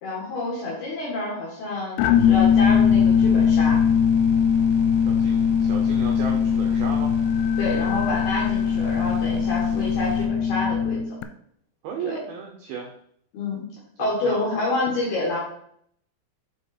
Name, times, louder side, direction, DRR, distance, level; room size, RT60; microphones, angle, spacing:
voice 1, 0.0-3.8 7.6-11.0 12.0-12.2 13.3-13.6 14.0-15.4, left 2 dB, 60° left, -5 dB, 3.4 m, -28 dB
sound 1, 2.0-11.2, left 7 dB, 90° left, 3.2 m, -20 dB
sound 2, 2.1-10.3, left 2 dB, 60° right, 1.6 m, -37 dB
voice 2, 5.1-7.1 11.8-12.9 14.0-14.7, right 6 dB, 90° right, 1 dB, 2.1 m, -35 dB
9.3 x 4.4 x 4.4 m, 0.66 s
omnidirectional pair, 5.6 m